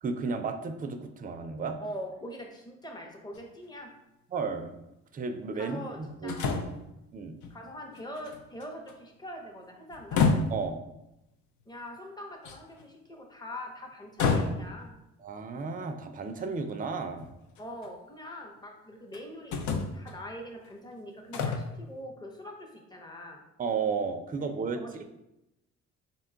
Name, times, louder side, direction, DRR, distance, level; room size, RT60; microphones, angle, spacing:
voice 1, 0.0-1.8 4.3-4.8 5.1-6.6 7.1-7.4 10.5-10.8 15.2-17.3 23.6-25.0, right 5 dB, 30° right, 6 dB, 0.4 m, -33 dB
voice 2, 1.8-3.9 5.5-6.6 7.5-10.2 11.7-14.9 17.6-23.4 24.7-25.0, left 1 dB, 15° left, 2 dB, 0.7 m, -43 dB
sound 1, 3.3-3.4 6.3-6.8 7.4-7.5 7.9-8.9 9.9-10.7 12.4-12.8 14.2-14.9 16.4-16.5 17.2-17.9 19.1-19.2 19.5-20.1 21.3-21.7, left 4 dB, 75° left, 0.6 m, -28 dB
3.9 x 2.2 x 3.7 m, 0.89 s
cardioid pair, 90°, 30 cm